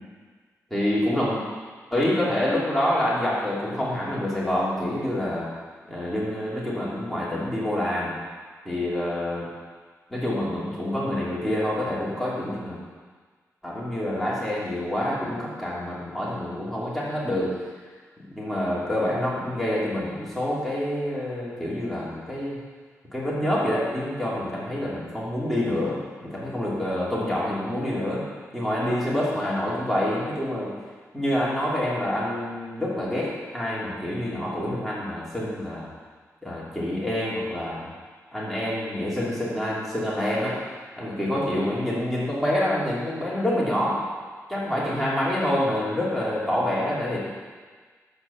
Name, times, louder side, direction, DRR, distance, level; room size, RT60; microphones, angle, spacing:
voice 1, 0.7-1.4 1.9-5.5 5.9-8.2 8.6-9.5 10.1-12.8 13.6-17.5 18.3-22.6 23.1-28.2 28.5-30.7 31.1-35.9 36.4-37.9 38.3-40.6 41.0-44.0 44.5-47.2, left 1 dB, ahead, -8 dB, 3.1 m, -27 dB
10.0 x 7.7 x 7.0 m, 1.5 s
wide cardioid pair, 140°, 6 cm